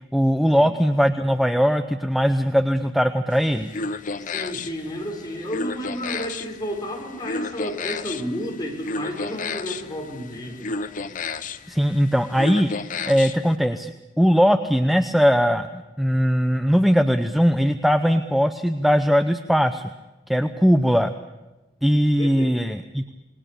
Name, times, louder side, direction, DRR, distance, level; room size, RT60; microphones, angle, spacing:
voice 1, 0.1-3.7 11.7-12.7 13.1-19.8 20.3-21.1 21.8-23.0, equal, ahead, 8 dB, 0.8 m, -20 dB
sound 1, 3.3-13.5, left 3 dB, 45° left, 1.0 m, -33 dB
voice 2, 4.3-10.9 22.2-22.5, equal, 25° left, 0 dB, 5.4 m, -32 dB
27.5 x 20.5 x 6.9 m, 1.1 s
head